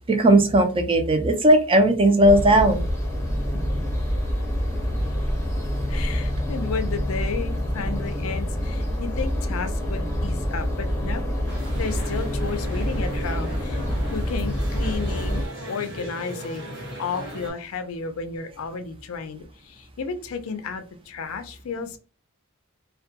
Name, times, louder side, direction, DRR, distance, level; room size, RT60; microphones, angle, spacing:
voice 1, 0.1-2.8, right 1 dB, 25° right, 6 dB, 0.4 m, -17 dB
sound 1, 2.2-15.4, equal, 15° left, 0.6 m, -26 dB
voice 2, 5.9-11.2 11.8-13.8 14.1-16.7 17.0-22.0, left 5 dB, 75° left, 8 dB, 0.4 m, -32 dB
sound 2, 11.5-17.5, right 1 dB, 55° right, 1.0 m, -37 dB
2.2 x 2.2 x 2.7 m, 0.35 s
head